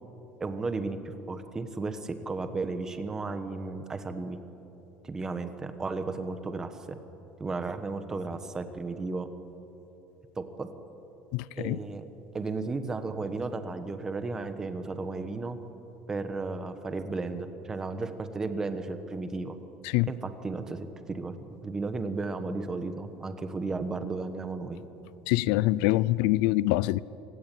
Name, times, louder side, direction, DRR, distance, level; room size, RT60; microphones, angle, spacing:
voice 1, 0.4-4.4 5.0-7.0 7.4-9.3 10.4-10.7 11.6-12.1 12.3-15.6 16.1-19.6 20.1-21.4 21.6-24.8, right 3 dB, 15° right, 9 dB, 1.2 m, -34 dB
voice 2, 11.3-11.8 19.8-20.1 25.3-27.0, left 18 dB, 70° left, 20 dB, 0.5 m, -25 dB
26.0 x 17.5 x 9.2 m, 3.0 s
cardioid pair, 175°, 4 cm